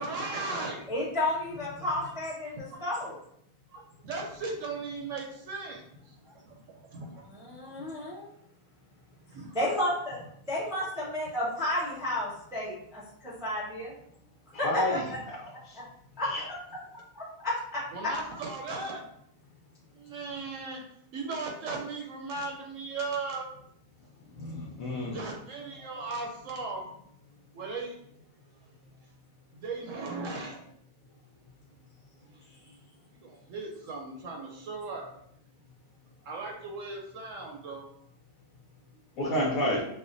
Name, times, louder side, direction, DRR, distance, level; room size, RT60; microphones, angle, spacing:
voice 1, 0.0-0.9 2.7-2.8 3.7-7.3 7.6-8.1 9.3-9.6 17.9-19.0 19.9-20.8 21.1-23.6 25.0-26.9 27.5-28.0 29.5-30.7 32.2-32.5 33.1-35.2 36.2-37.9, right 3 dB, 70° right, 0 dB, 0.9 m, -37 dB
voice 2, 0.9-3.1 7.3-8.3 9.5-10.2 10.5-13.9 14.6-15.2 15.7-15.8 16.2-16.3 17.1-18.1 32.5-32.7, left 1 dB, 5° right, -7 dB, 0.6 m, -32 dB
voice 3, 24.3-25.2 39.2-39.8, left 1 dB, 70° left, -4 dB, 1.1 m, -29 dB
5.6 x 2.1 x 2.5 m, 0.71 s
omnidirectional pair, 1.5 m